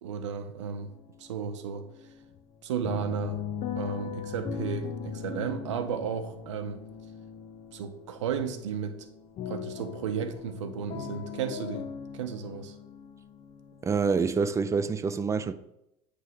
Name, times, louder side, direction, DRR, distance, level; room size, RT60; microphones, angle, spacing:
voice 1, 0.0-0.9 1.2-1.8 2.6-3.5 3.8-6.8 7.7-8.9 9.5-11.9 12.1-12.8, right 7 dB, 90° right, 0.7 m, -34 dB
sound 1, 0.6-1.3 1.6-14.4, left 7 dB, 45° left, 0.7 m, -39 dB
voice 2, 13.8-15.5, right 5 dB, 20° right, 0.4 m, -26 dB
9.2 x 3.4 x 3.5 m
hypercardioid pair, 90°, 15 cm